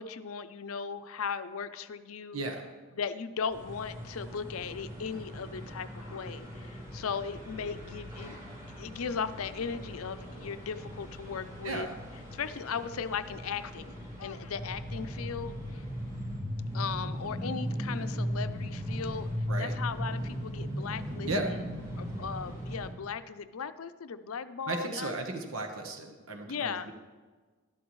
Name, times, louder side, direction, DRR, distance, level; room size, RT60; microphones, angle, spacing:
voice 1, 0.0-2.4 2.9-8.4 8.7-11.9 12.3-15.8 16.7-19.3 19.6-21.6 22.0-25.1 26.5-26.9, left 6 dB, 90° left, 12 dB, 0.5 m, -37 dB
voice 2, 2.3-2.7 11.6-11.9 19.5-19.7 21.3-21.5 24.7-26.9, right 2 dB, 80° right, 4 dB, 1.2 m, -35 dB
sound 1, 3.5-22.9, equal, 20° right, 3.4 m, -38 dB
12.5 x 12.0 x 3.1 m, 1.4 s
head